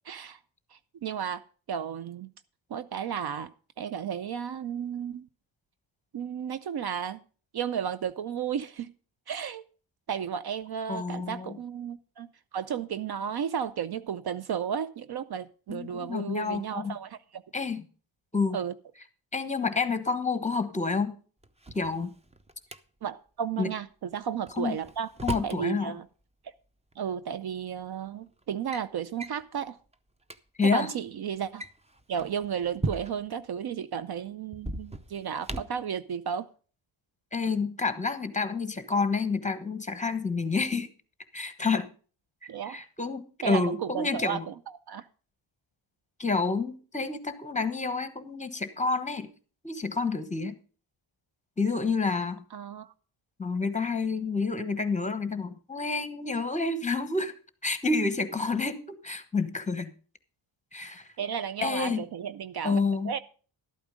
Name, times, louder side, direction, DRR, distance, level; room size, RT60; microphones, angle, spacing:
voice 1, 0.1-0.4 0.7-1.4 1.7-2.3 2.7-3.5 3.8-5.3 6.1-7.2 7.5-8.9 9.3-9.6 10.1-17.4 18.5-18.7 23.0-25.1 25.4-26.0 27.0-29.8 30.7-31.6 32.1-36.5 42.5-42.8 43.4-44.5 44.9-45.1 52.5-52.9 61.2-63.2, right 8 dB, 55° right, 0.6 m, -33 dB
voice 2, 10.9-11.6 15.7-17.0 17.5-17.9 18.3-18.6 19.3-21.2 21.7-22.1 23.6-23.7 24.6-24.8 25.2-25.9 30.6-30.9 37.3-40.9 41.3-41.9 42.4-44.5 46.2-49.3 49.6-50.6 51.6-52.4 53.4-57.3 57.6-59.9 60.7-61.1 61.6-62.0 62.6-63.1, left 4 dB, 15° left, 1.1 m, -29 dB
Drawer open or close, 21.4-22.8 24.5-25.6 26.9-27.0 27.8-28.1 28.4-28.9 29.2-29.4 29.9-30.0 30.2-30.4 31.4-33.4 34.5-35.9, right 2 dB, 15° right, 0.6 m, -37 dB
12.5 x 8.8 x 5.0 m
cardioid pair, 100°, 48 cm